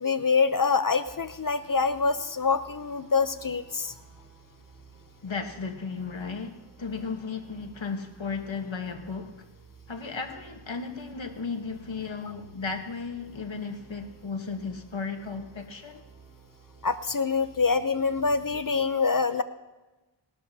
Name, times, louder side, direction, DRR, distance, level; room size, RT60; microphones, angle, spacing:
voice 1, 0.0-3.9 16.8-19.4, left 4 dB, 45° left, 0.7 m, -25 dB
sound 1, 1.1-18.5, right 5 dB, 5° right, 4.0 m, -54 dB
voice 2, 5.2-9.5 9.9-16.0, left 4 dB, 75° left, 1.5 m, -35 dB
20.0 x 12.0 x 2.8 m
wide cardioid pair, 60°, 46 cm